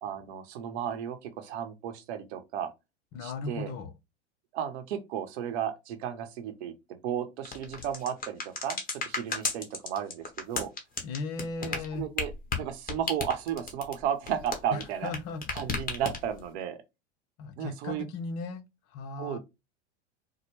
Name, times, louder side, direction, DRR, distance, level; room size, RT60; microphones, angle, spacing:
voice 1, 0.0-2.7 3.2-3.7 4.5-10.7 11.6-12.3 12.6-15.1 15.5-16.8 17.6-18.0 19.2-19.4, right 9 dB, 65° right, 0.9 m, -34 dB
voice 2, 3.1-3.9 11.0-12.1 14.7-15.4 17.4-19.4, left 4 dB, 45° left, 0.6 m, -37 dB
sound 1, 7.5-15.2 15.4-16.4, left 4 dB, 25° left, 1.0 m, -33 dB
4.3 x 2.1 x 3.2 m
hypercardioid pair, 100°, 36 cm